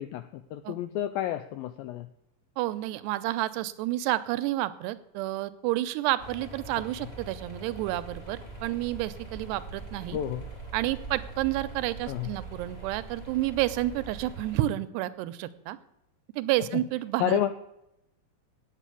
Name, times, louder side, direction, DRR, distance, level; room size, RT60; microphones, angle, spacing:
voice 1, 0.0-2.1 10.1-10.5 12.1-12.3 16.7-16.8 17.2-17.5, left 12 dB, 85° left, 10 dB, 2.0 m, -30 dB
voice 2, 2.6-10.2 10.7-15.8 16.4-17.4, right 15 dB, 85° right, 14 dB, 2.7 m, -30 dB
sound 1, 6.2-14.6, right 3 dB, 35° left, 0.6 m, -42 dB
9.2 x 8.7 x 8.2 m, 0.83 s
omnidirectional pair, 4.8 m